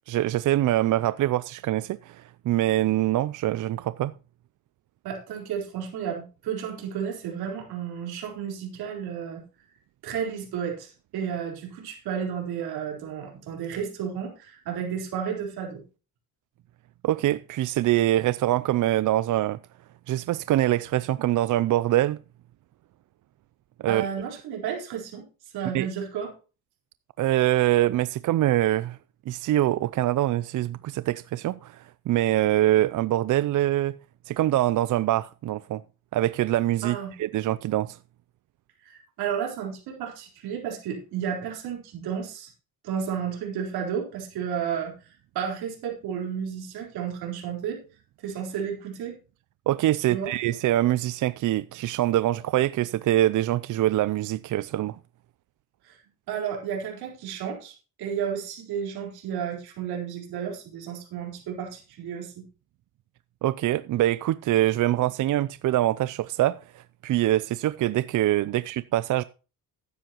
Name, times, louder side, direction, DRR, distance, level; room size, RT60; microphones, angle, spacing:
voice 1, 0.1-4.1 17.0-19.6 20.1-22.2 23.8-24.1 25.7-25.9 27.2-29.0 29.3-33.9 34.3-35.8 36.1-38.0 49.7-55.0 63.4-69.2, right 14 dB, 55° right, 0.5 m, -24 dB
voice 2, 5.0-9.4 10.0-15.8 23.9-25.3 25.5-26.3 36.8-37.1 38.8-42.5 42.8-47.8 48.2-49.2 50.1-50.3 55.8-56.0 56.3-62.4, right 8 dB, 85° right, 4.1 m, -32 dB
13.0 x 9.9 x 3.0 m
cardioid pair, 85°, 36 cm